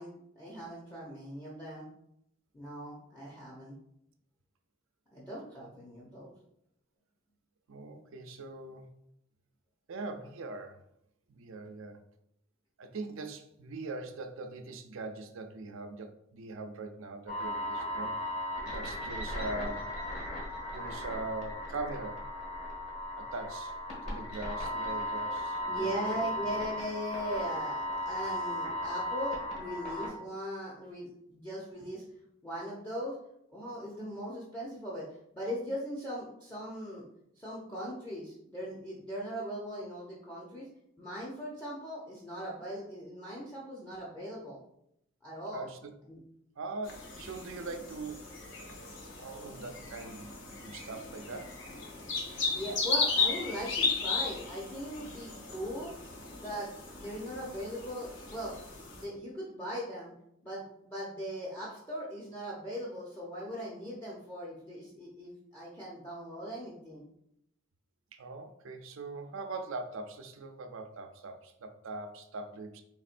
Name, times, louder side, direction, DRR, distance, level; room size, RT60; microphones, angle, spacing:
voice 1, 0.0-1.9 2.5-3.8 5.1-6.3 25.7-32.0 32.4-33.1 33.5-35.1 35.3-37.0 37.4-40.6 41.0-44.6 45.2-45.7 46.1-46.2 52.5-55.9 56.4-60.1 60.4-67.0, equal, 10° left, -6 dB, 0.6 m, -39 dB
voice 2, 7.7-8.9 9.9-10.8 11.3-12.0 12.8-18.2 18.6-20.0 20.7-22.3 23.2-23.8 24.0-26.2 45.5-45.9 46.6-48.2 49.2-50.3 50.6-51.6 68.1-72.8, right 3 dB, 75° right, 7 dB, 0.5 m, -41 dB
sound 1, 17.3-30.1, equal, 35° left, 1.3 m, -36 dB
sound 2, 46.9-59.0, left 4 dB, 60° left, 0.8 m, -36 dB
4.1 x 3.5 x 2.5 m, 0.77 s
head